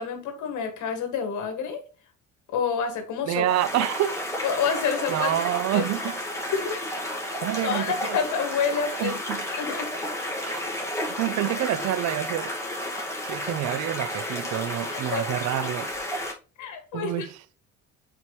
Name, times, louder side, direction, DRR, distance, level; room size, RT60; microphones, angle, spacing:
voice 1, 0.0-1.8 2.5-3.4 4.4-5.4 5.7-5.9 6.5-6.8 7.6-9.2 9.5-9.9 14.9-15.4 16.6-17.3, left 6 dB, 70° left, 2.0 m, -28 dB
voice 2, 3.3-4.3 5.1-6.2 7.4-8.2 9.0-9.5 10.4-10.6 11.2-12.5 13.2-15.9 16.9-17.4, right 13 dB, 60° right, 0.5 m, -28 dB
sound 1, 3.4-16.3, left 1 dB, 10° left, 1.9 m, -32 dB
7.6 x 4.4 x 3.1 m
cardioid pair, 115°, 31 cm